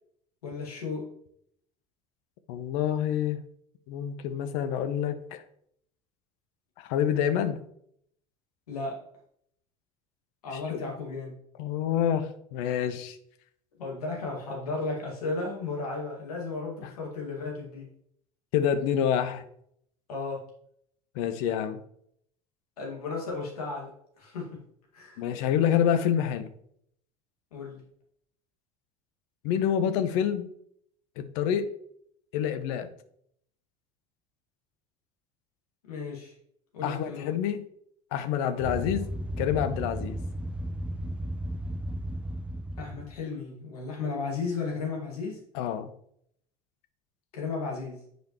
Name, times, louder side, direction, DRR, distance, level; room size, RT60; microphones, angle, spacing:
voice 1, 0.4-1.1 8.7-9.0 10.4-11.3 13.8-17.9 20.1-20.4 22.8-24.6 24.9-25.2 27.5-27.8 35.9-36.3 36.7-37.3 42.8-45.4 47.3-48.0, left 3 dB, 90° left, -1 dB, 2.0 m, -34 dB
voice 2, 2.5-3.4 3.9-5.4 6.8-7.6 10.5-10.8 11.6-13.2 16.8-16.9 18.5-19.4 21.1-21.8 25.2-26.5 29.4-30.5 31.2-31.7 32.3-32.9 36.8-37.6 38.1-39.1 39.4-40.2 45.5-45.9, left 9 dB, 70° left, 11 dB, 0.7 m, -27 dB
sound 1, 38.6-43.2, right 1 dB, 5° right, 0.4 m, -34 dB
7.7 x 5.1 x 3.0 m, 0.68 s
hypercardioid pair, 70°, 19 cm